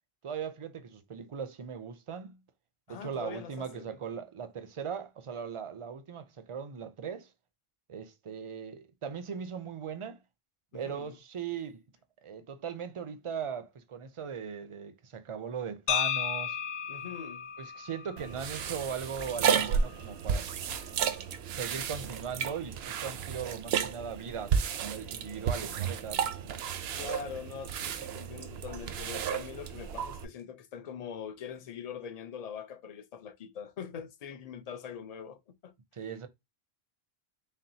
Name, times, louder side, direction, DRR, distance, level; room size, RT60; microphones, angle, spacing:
voice 1, 0.2-2.4 2.9-7.3 7.9-10.2 10.7-11.8 12.2-16.6 17.6-20.5 21.5-26.7 35.9-36.3, right 7 dB, 45° right, 0.4 m, -39 dB
voice 2, 2.9-4.0 10.7-11.1 16.9-17.5 21.8-22.0 26.9-35.7, left 7 dB, 50° left, 0.5 m, -43 dB
sound 1, 15.9-19.9, left 9 dB, 80° left, 0.8 m, -35 dB
sound 2, 18.2-30.2, right 7 dB, 80° right, 0.8 m, -33 dB
4.2 x 3.7 x 2.7 m
omnidirectional pair, 1.0 m